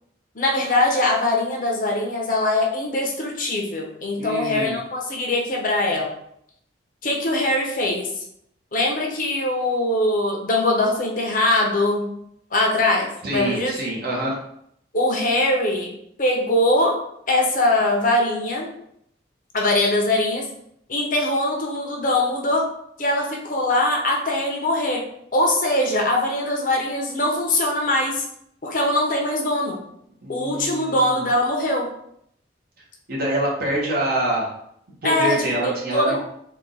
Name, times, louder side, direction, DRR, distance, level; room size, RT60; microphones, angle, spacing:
voice 1, 0.3-6.1 7.0-8.2 8.7-12.1 12.5-13.7 14.9-15.9 16.2-17.0 17.3-18.7 19.5-20.5 20.9-22.6 23.0-25.0 25.3-28.2 28.6-29.8 30.3-31.9 35.0-36.2, left 1 dB, 50° left, 0 dB, 0.8 m, -22 dB
voice 2, 4.2-4.7 13.2-14.3 30.2-31.3 33.1-34.5 35.0-36.2, right 1 dB, 55° right, -3 dB, 1.2 m, -25 dB
3.6 x 2.4 x 4.1 m, 0.72 s
head